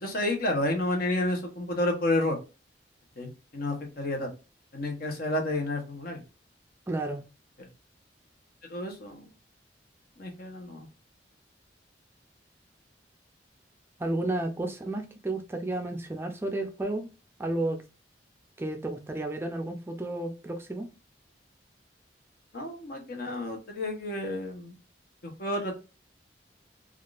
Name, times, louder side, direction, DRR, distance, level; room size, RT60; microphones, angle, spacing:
voice 1, 0.0-2.4 3.2-4.3 4.7-6.2 8.7-9.2 10.2-10.9 22.5-24.7 25.2-25.7, left 1 dB, 55° left, 0.9 m, -30 dB
voice 2, 6.9-7.2 14.0-17.1 17.4-17.8 18.6-20.9, right 2 dB, 15° right, 0.4 m, -32 dB
3.5 x 2.4 x 2.4 m
head